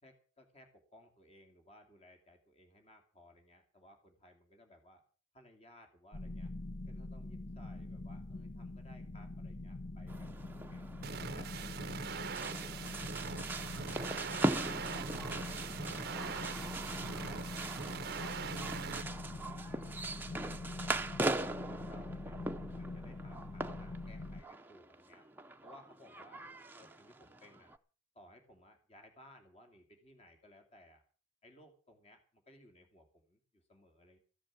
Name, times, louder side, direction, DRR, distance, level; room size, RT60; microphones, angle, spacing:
voice 1, 0.0-5.0 5.3-6.5 6.9-10.8 11.2-13.5 13.9-16.8 17.2-22.4 22.7-25.2 25.6-26.5 26.8-27.7 28.1-31.0 31.4-34.2, left 1 dB, 30° left, 4 dB, 2.6 m, -61 dB
sound 1, 6.1-24.4, left 2 dB, 60° left, 1.0 m, -44 dB
sound 2, 10.1-27.8, right 2 dB, 10° right, 0.7 m, -41 dB
sound 3, 11.0-19.0, right 6 dB, 50° right, 0.6 m, -42 dB
15.0 x 10.0 x 7.2 m, 0.39 s
head